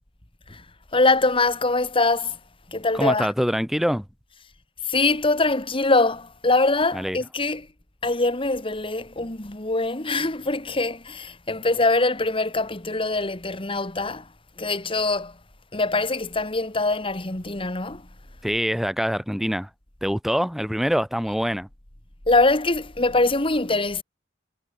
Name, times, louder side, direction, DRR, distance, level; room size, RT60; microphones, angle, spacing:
voice 1, 0.9-2.4 2.7-3.3 4.8-7.7 8.0-14.3 14.6-15.4 15.7-18.1 22.3-24.0, left 3 dB, 30° left, 2.2 m, -23 dB
voice 2, 3.0-4.0 6.9-7.2 18.4-19.7 20.0-21.7, equal, ahead, 1.4 m, -24 dB
head